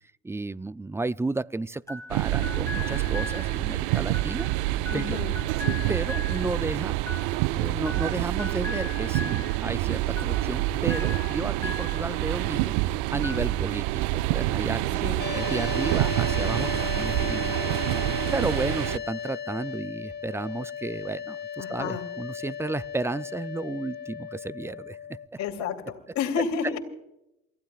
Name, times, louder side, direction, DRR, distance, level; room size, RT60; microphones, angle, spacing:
voice 1, 0.2-4.5 4.9-5.2 5.9-7.0 7.6-12.8 13.1-15.1 15.3-17.9 18.3-25.0, right 3 dB, 10° right, 0.4 m, -32 dB
sound 1, 1.9-12.7 13.1-14.0, left 3 dB, 10° left, 3.9 m, -40 dB
sound 2, 2.1-19.0, right 17 dB, 75° right, 0.6 m, -27 dB
voice 2, 4.9-5.4 5.6-5.8 15.0-15.2 21.6-22.1 25.4-26.8, left 6 dB, 60° left, 3.1 m, -31 dB
sound 3, 15.2-25.3, left 8 dB, 35° left, 0.9 m, -36 dB
28.5 x 15.5 x 2.4 m
hypercardioid pair, 75°, 31 cm